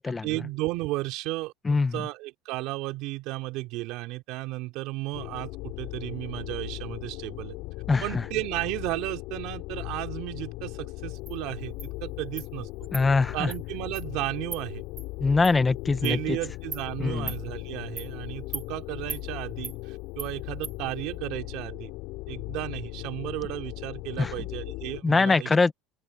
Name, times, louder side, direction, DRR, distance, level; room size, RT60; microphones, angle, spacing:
voice 1, 0.2-7.5 8.0-12.9 13.3-14.8 16.0-21.9 22.3-25.5, right 19 dB, 60° right, 3.4 m, -34 dB
voice 2, 1.6-2.0 7.9-8.2 12.9-13.5 15.2-16.4 17.0-17.3 24.2-24.3 25.0-25.7, left 4 dB, 15° left, 0.7 m, -23 dB
sound 1, 5.1-25.0, left 21 dB, 65° left, 4.6 m, -38 dB
Insect, 11.3-11.4 11.8-11.9 12.4-12.5 12.9-13.0 13.5-13.6 13.9-14.1 14.5-14.6 15.0-15.1 15.4-15.5 16.0-16.2 16.7-16.8 17.3-17.4 18.0-18.1 18.5-18.7 19.1-19.2 19.6-19.8 20.2-20.3 20.6-20.7, right 5 dB, 20° right, 1.5 m, -37 dB
open air
cardioid pair, 145°, 0 cm